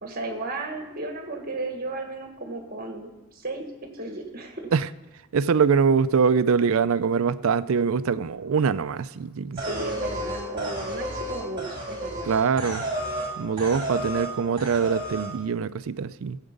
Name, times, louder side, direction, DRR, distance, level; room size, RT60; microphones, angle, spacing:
voice 1, 0.0-3.6 3.9-4.7 9.5-12.3, right 2 dB, 40° right, 4 dB, 1.5 m, -34 dB
voice 2, 5.3-9.6 12.2-12.8 13.4-16.4, right 6 dB, 65° right, 15 dB, 0.4 m, -23 dB
sound 1, 9.6-13.3 13.6-14.3 14.6-15.3, right 1 dB, 20° right, 3.6 m, -32 dB
16.0 x 8.0 x 5.3 m, 1.1 s
head